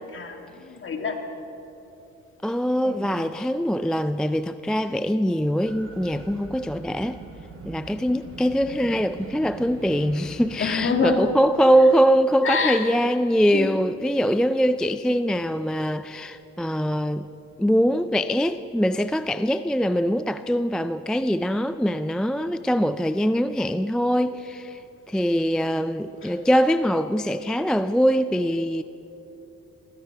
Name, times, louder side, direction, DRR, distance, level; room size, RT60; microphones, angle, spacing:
voice 1, 0.1-1.2 2.8-3.1 10.6-11.3 11.6-11.7 12.4-12.8 13.5-13.7 26.2-26.3, left 4 dB, 40° left, 3 dB, 2.3 m, -26 dB
voice 2, 2.4-7.2 7.6-17.3 17.6-24.8 25.1-28.8, equal, 5° left, 12 dB, 0.3 m, -23 dB
sound 1, 5.6-11.2, right 3 dB, 45° right, 3.0 m, -42 dB
19.5 x 16.0 x 4.6 m, 3.0 s
cardioid pair, 90°, 30 cm